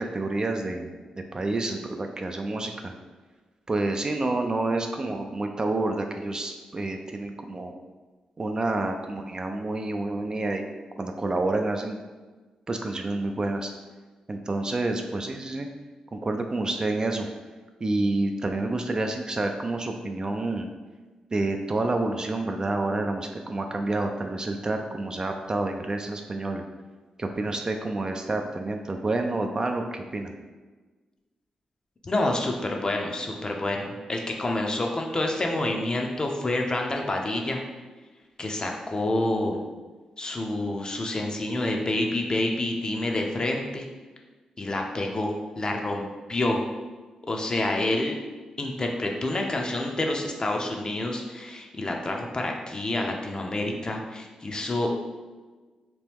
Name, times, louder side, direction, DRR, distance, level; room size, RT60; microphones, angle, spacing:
voice 1, 0.0-2.9 3.7-7.7 8.4-10.7 11.0-12.0 12.7-13.7 14.3-15.7 16.1-17.3 17.8-20.7 21.3-26.6 27.2-30.3, right 2 dB, 35° right, 4 dB, 0.3 m, -28 dB
voice 2, 32.0-37.6 38.4-39.6 40.2-43.9 44.6-46.0 46.3-46.6 47.2-48.1 48.6-54.9, left 2 dB, 35° left, 1 dB, 0.5 m, -28 dB
2.9 x 2.2 x 3.4 m, 1.3 s
cardioid pair, 60°, 2 cm